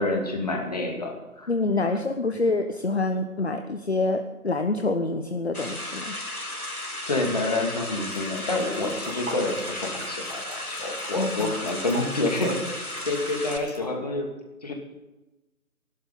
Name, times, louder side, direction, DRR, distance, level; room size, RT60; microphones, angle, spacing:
voice 1, 0.0-1.5 7.1-12.6 13.0-14.3 14.6-14.7, left 2 dB, 25° left, 2 dB, 2.4 m, -28 dB
voice 2, 1.5-6.2 11.2-11.5, left 2 dB, 45° left, 7 dB, 1.1 m, -26 dB
sound 1, 5.5-13.6, left 1 dB, 80° left, 3.4 m, -34 dB
sound 2, 8.1-13.8, right 1 dB, 60° right, 6.2 m, -43 dB
27.0 x 12.0 x 4.0 m, 1.1 s
figure-of-eight pair, 165°, 43 cm